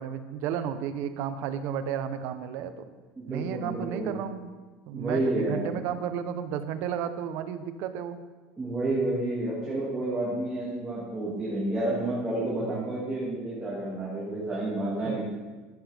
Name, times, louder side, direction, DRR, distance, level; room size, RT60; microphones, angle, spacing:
voice 1, 0.0-2.7 3.3-4.5 4.9-8.2 12.6-12.9 15.0-15.2, right 8 dB, 60° right, 10 dB, 0.7 m, -33 dB
voice 2, 3.2-4.2 4.9-5.7 8.6-15.2, right 2 dB, 15° right, -7 dB, 2.1 m, -30 dB
11.5 x 8.1 x 3.4 m, 1.3 s
cardioid pair, 145°, 5 cm